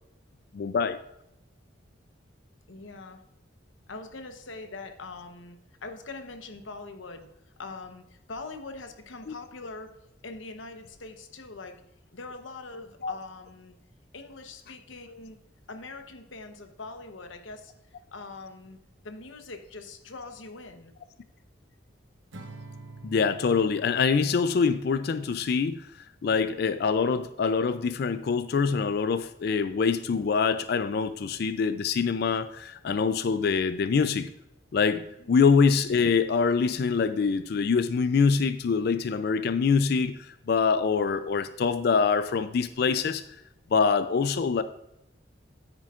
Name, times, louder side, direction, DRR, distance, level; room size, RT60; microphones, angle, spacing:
voice 1, 0.5-1.0 9.3-9.4 13.0-13.1 23.0-25.9 26.2-34.3 34.7-43.4 43.7-44.6, left 5 dB, 55° left, 0.3 m, -25 dB
voice 2, 2.7-3.2 3.9-7.3 7.6-11.8 12.1-13.7 14.1-15.4 15.7-17.7 18.1-18.8 19.0-20.9 35.2-35.4, left 3 dB, 85° left, 1.0 m, -42 dB
Acoustic guitar / Strum, 22.3-25.7, right 3 dB, 75° right, 0.9 m, -48 dB
9.3 x 9.0 x 2.5 m
head